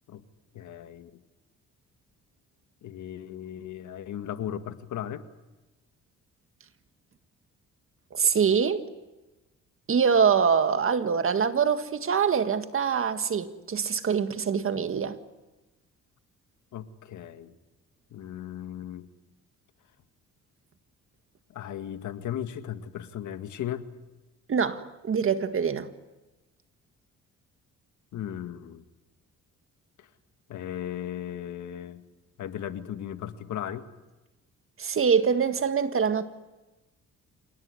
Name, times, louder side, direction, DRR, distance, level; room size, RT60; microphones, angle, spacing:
voice 1, 0.5-1.1 2.8-5.3 16.7-17.5 18.1-19.1 21.5-23.9 28.1-28.8 30.0-30.1 30.5-32.0 32.4-33.9, left 10 dB, 75° left, 1.8 m, -36 dB
voice 2, 8.1-8.8 9.9-15.2 24.5-25.9 34.8-36.2, right 6 dB, 45° right, 1.7 m, -24 dB
27.0 x 18.5 x 9.7 m
cardioid pair, 90°, 30 cm